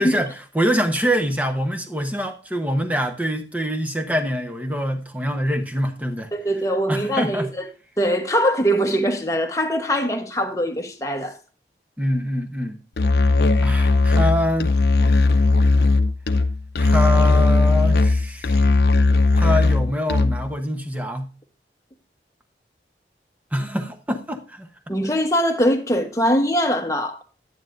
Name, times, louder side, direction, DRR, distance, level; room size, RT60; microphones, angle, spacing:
voice 1, 0.0-6.3 6.9-7.5 12.0-12.8 13.6-14.7 16.8-18.8 19.3-21.3 23.5-24.7, equal, 10° right, 0.9 m, -25 dB
voice 2, 6.3-7.7 8.0-11.3 24.9-27.2, equal, 20° left, 1.1 m, -22 dB
Musical instrument, 13.0-20.5, left 3 dB, 65° left, 0.6 m, -17 dB
9.7 x 9.5 x 2.5 m
head